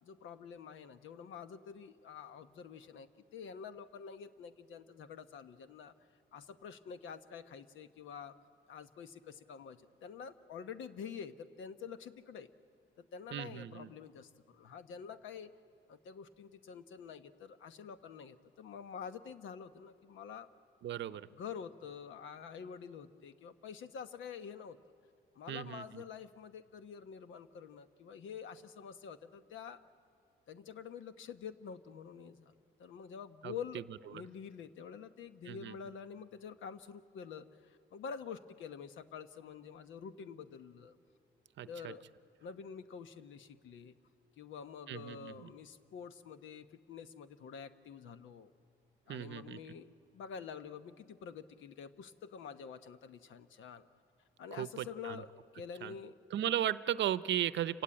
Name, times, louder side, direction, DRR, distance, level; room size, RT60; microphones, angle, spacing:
voice 1, 0.0-5.9 6.3-8.4 8.7-12.5 13.0-15.5 15.9-20.5 21.1-24.8 25.3-29.8 30.5-32.5 32.8-40.9 41.6-42.0 42.4-43.9 44.4-48.5 49.1-53.9 54.4-56.2, left 7 dB, 75° left, 11 dB, 1.1 m, -47 dB
voice 2, 13.3-13.9 20.8-21.3 25.5-26.0 33.4-33.8 34.1-34.2 35.5-35.7 41.6-41.9 44.9-45.5 49.1-49.6 54.6-55.2 55.8-55.9 56.3-57.8, right 11 dB, 65° right, 16 dB, 0.7 m, -36 dB
28.5 x 17.5 x 8.9 m, 2.3 s
cardioid pair, 90°, 20 cm